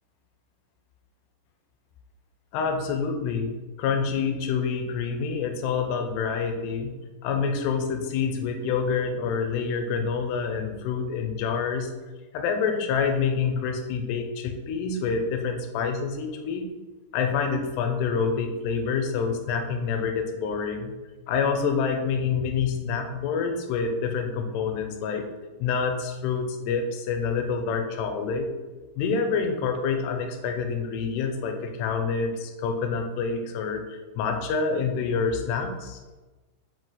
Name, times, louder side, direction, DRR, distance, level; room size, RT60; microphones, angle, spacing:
voice 1, 2.5-3.5 3.8-7.0 7.2-11.9 12.3-16.7 17.1-20.9 21.3-25.3 25.6-28.5 29.0-36.0, left 5 dB, 80° left, 4 dB, 2.6 m, -27 dB
7.3 x 2.8 x 5.5 m, 1.2 s
omnidirectional pair, 5.0 m